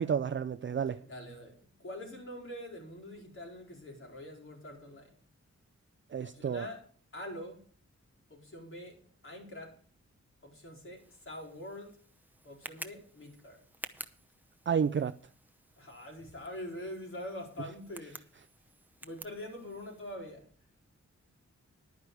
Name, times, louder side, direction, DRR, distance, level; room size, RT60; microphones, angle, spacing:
voice 1, 0.0-1.0 6.1-6.7 14.7-15.2, right 7 dB, 40° right, 0.5 m, -30 dB
voice 2, 1.1-5.1 6.2-6.8 7.1-7.6 8.3-9.0 9.2-9.8 10.4-12.0 12.4-13.6 15.8-18.2 19.0-20.5, left 1 dB, 45° left, 4.3 m, -44 dB
Tick, 11.0-20.2, right 1 dB, 5° right, 0.8 m, -51 dB
11.0 x 9.9 x 4.8 m
wide cardioid pair, 120°, 29 cm